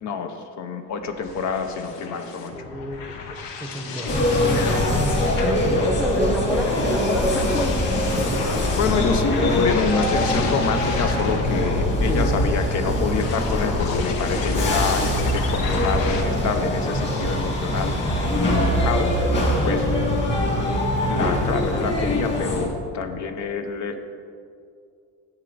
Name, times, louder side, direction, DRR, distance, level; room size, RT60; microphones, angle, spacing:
voice 1, 0.0-2.7 8.7-18.0 18.4-19.2 19.6-19.9 20.4-20.5 21.1-24.0, left 5 dB, 50° left, 7 dB, 0.7 m, -27 dB
sound 1, 1.0-16.2, left 3 dB, 75° left, 1.2 m, -30 dB
voice 2, 2.5-3.1 3.6-8.4 12.1-12.3, equal, ahead, 2 dB, 0.7 m, -29 dB
sound 2, 4.1-22.6, left 1 dB, 30° left, 2.2 m, -23 dB
9.9 x 7.6 x 3.9 m, 2.4 s
cardioid pair, 125°, 36 cm